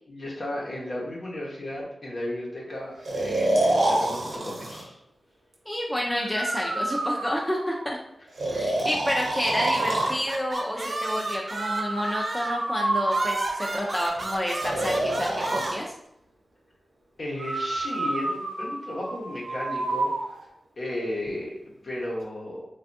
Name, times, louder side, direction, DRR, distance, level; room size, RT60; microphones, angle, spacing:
voice 1, 0.1-4.9 17.2-20.4 20.8-22.7, left 1 dB, 60° left, -4 dB, 0.9 m, -34 dB
Breathing, 3.0-4.8 6.2-7.8 8.4-10.2 11.6-13.8 14.6-15.8 17.4-20.2, right 2 dB, 85° right, 0.7 m, -28 dB
voice 2, 5.7-8.0 8.5-15.9, equal, 10° left, -1 dB, 0.5 m, -29 dB
sound 1, 9.8-12.7 13.1-15.7, right 2 dB, 45° right, 0.5 m, -34 dB
3.2 x 2.4 x 2.6 m, 0.80 s
wide cardioid pair, 75°, 0 cm